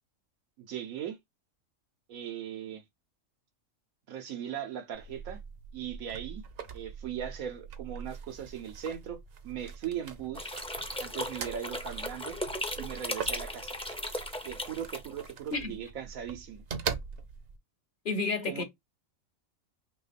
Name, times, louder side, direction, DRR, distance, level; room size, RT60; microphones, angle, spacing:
voice 1, 0.6-1.2 2.1-2.8 4.1-5.4 5.7-6.4 6.7-9.2 9.4-10.5 11.0-12.4 12.8-13.7 14.4-16.6 18.5-18.6, right 9 dB, 90° right, 1.3 m, -38 dB
sound 1, 4.9-17.6, right 6 dB, 55° right, 0.8 m, -42 dB
sound 2, 10.3-15.3, left 1 dB, 10° left, 0.4 m, -37 dB
voice 2, 18.0-18.6, left 3 dB, 45° left, 0.8 m, -31 dB
3.1 x 3.0 x 4.1 m
omnidirectional pair, 1.4 m